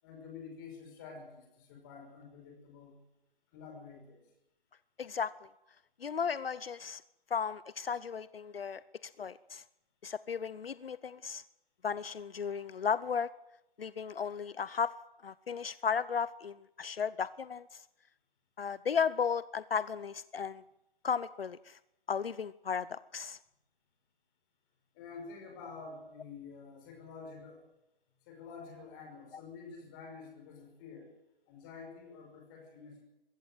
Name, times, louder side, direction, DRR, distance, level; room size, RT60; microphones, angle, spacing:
voice 1, 0.0-3.0 3.5-4.2 24.9-27.6 28.3-31.1 31.5-33.0, left 5 dB, 20° left, 3 dB, 5.6 m, -49 dB
voice 2, 5.0-5.5 6.0-7.0 7.3-9.6 10.0-11.4 11.8-13.3 13.8-14.9 15.2-17.8 18.6-20.6 21.0-21.8 22.1-23.4, left 6 dB, 75° left, 18 dB, 0.8 m, -35 dB
22.5 x 16.0 x 7.9 m, 0.89 s
figure-of-eight pair, 160°, 29 cm